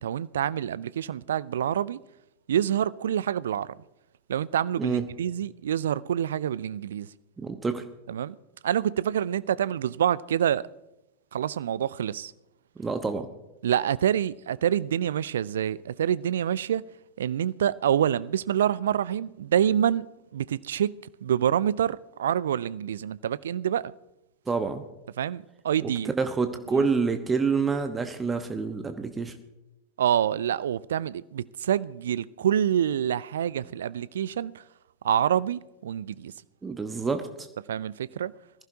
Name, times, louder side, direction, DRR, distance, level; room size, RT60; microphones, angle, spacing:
voice 1, 0.0-2.0 2.5-3.8 4.3-7.1 8.1-8.4 8.6-10.7 11.3-12.3 13.6-16.8 17.2-20.1 20.3-20.9 21.2-23.9 25.2-26.1 26.7-26.9 30.0-34.5 35.0-36.3 37.7-38.3, right 10 dB, 60° right, 0.4 m, -26 dB
voice 2, 7.4-7.8 12.8-13.3 24.5-24.8 25.8-29.3 36.6-37.5, right 4 dB, 15° right, 1.1 m, -27 dB
21.0 x 15.0 x 2.8 m
figure-of-eight pair, 90°, 0 cm